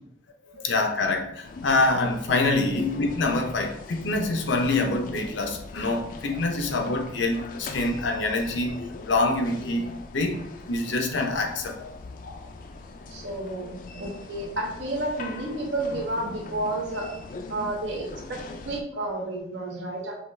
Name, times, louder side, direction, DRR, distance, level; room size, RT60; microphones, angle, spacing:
voice 1, 0.5-11.9 12.2-12.4, left 2 dB, 85° left, 3 dB, 0.7 m, -26 dB
sound 1, 1.4-18.8, left 3 dB, 45° left, 0.4 m, -41 dB
voice 2, 13.1-17.1 17.5-20.2, right 2 dB, 80° right, -1 dB, 1.2 m, -31 dB
5.6 x 2.4 x 3.2 m, 0.76 s
head